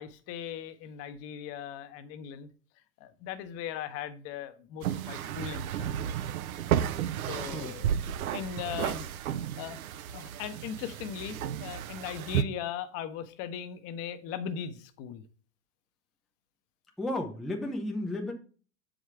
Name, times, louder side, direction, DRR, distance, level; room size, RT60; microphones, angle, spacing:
voice 1, 0.0-2.5 3.0-6.0 7.3-7.9 8.3-9.1 9.6-15.2, left 8 dB, 30° left, 11 dB, 0.8 m, -39 dB
sound 1, 4.8-12.4, right 10 dB, 60° right, 0.7 m, -33 dB
voice 2, 17.0-18.3, left 1 dB, ahead, 2 dB, 0.5 m, -33 dB
7.2 x 5.1 x 4.6 m, 0.39 s
hypercardioid pair, 115°, 47 cm